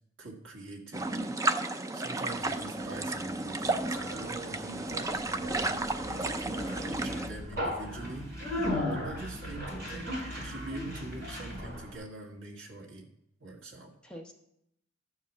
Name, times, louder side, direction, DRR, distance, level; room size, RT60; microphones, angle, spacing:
voice 1, 0.2-1.6 1.9-6.6 6.9-8.6 9.0-13.1 13.4-13.9, right 2 dB, 65° right, -1 dB, 2.0 m, -44 dB
sound 1, 0.9-7.3, right 2 dB, 15° right, 0.4 m, -33 dB
voice 2, 2.1-2.5 8.6-9.4 14.0-14.3, equal, 5° left, 0 dB, 0.9 m, -46 dB
Conversation, 2.6-11.9, left 1 dB, 45° right, 4.4 m, -37 dB
12.5 x 4.8 x 7.2 m, 0.77 s
head